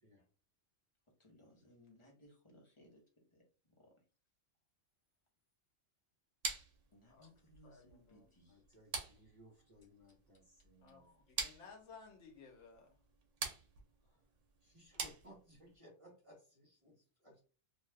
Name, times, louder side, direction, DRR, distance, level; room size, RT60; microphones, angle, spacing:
voice 1, 1.2-4.0 6.9-8.6 14.1-14.2, left 1 dB, 30° left, 0.8 m, -64 dB
sound 1, 6.4-15.8, right 5 dB, 75° right, 1.0 m, -46 dB
voice 2, 7.6-8.3 10.8-12.9, left 5 dB, 75° left, 1.0 m, -58 dB
voice 3, 8.5-11.2 14.0-14.3 14.6-17.4, equal, 30° right, 0.9 m, -62 dB
2.7 x 2.2 x 3.2 m
omnidirectional pair, 1.3 m